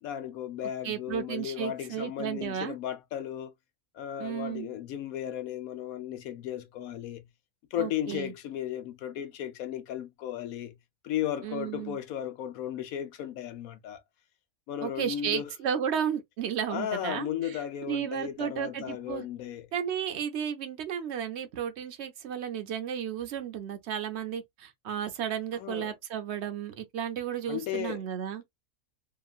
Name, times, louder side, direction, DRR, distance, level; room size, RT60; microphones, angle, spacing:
voice 1, 0.0-3.5 3.9-7.3 7.7-10.8 11.0-14.0 14.7-15.5 16.7-19.7 25.6-25.9 27.5-28.0, left 10 dB, 75° left, 1.0 m, -35 dB
voice 2, 0.8-2.8 4.2-4.7 7.8-8.3 11.4-12.0 14.8-17.6 17.9-19.2 19.7-28.4, right 8 dB, 60° right, 0.8 m, -33 dB
2.9 x 2.4 x 2.3 m
omnidirectional pair, 1.5 m